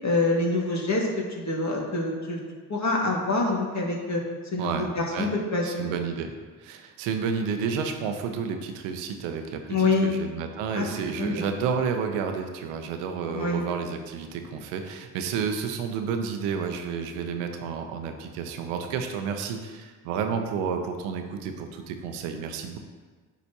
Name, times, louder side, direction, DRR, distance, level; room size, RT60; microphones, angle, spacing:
voice 1, 0.0-1.1 1.3-2.4 2.7-4.2 4.5-5.9 9.7-10.1 10.7-10.8 11.2-11.5 13.3-13.6, left 2 dB, 40° left, -2 dB, 1.8 m, -26 dB
voice 2, 5.6-6.3 6.6-22.8, right 6 dB, 90° right, 5 dB, 0.7 m, -31 dB
10.0 x 4.1 x 2.8 m, 1.5 s
supercardioid pair, 60°, 44 cm